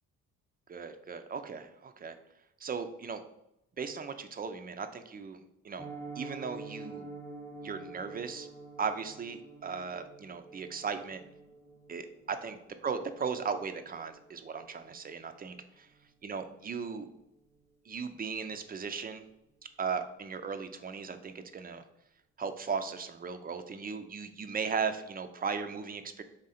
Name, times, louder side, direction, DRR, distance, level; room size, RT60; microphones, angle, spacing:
voice 1, 0.7-2.2 2.6-3.2 3.8-5.9 6.2-7.1 7.6-8.5 8.8-11.2 11.9-12.6 12.8-15.9 16.2-17.1 17.9-19.2 19.8-21.8 22.4-26.2, right 5 dB, 30° right, 8 dB, 0.4 m, -37 dB
Piano, 5.8-16.7 16.9-17.2 17.5-17.6 18.0-18.2 18.5-18.6, right 3 dB, 10° left, 0.6 m, -48 dB
3.8 x 3.2 x 4.1 m, 0.84 s
cardioid pair, 90°, 30 cm